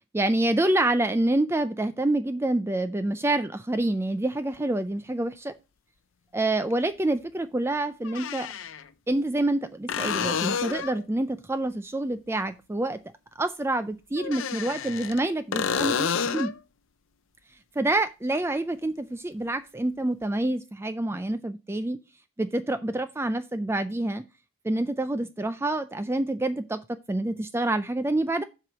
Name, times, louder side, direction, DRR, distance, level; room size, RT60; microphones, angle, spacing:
voice 1, 0.1-5.5 6.3-8.5 9.1-13.0 13.4-16.6 17.8-22.0 22.4-24.2 24.6-28.4, right 2 dB, 10° right, 0.3 m, -27 dB
sound 1, 4.5-4.6 6.7-6.8 8.0-8.8 9.9-11.0 14.2-15.2 15.5-16.6 20.2-20.3, left 6 dB, 65° left, 0.6 m, -29 dB
7.6 x 4.8 x 5.1 m
head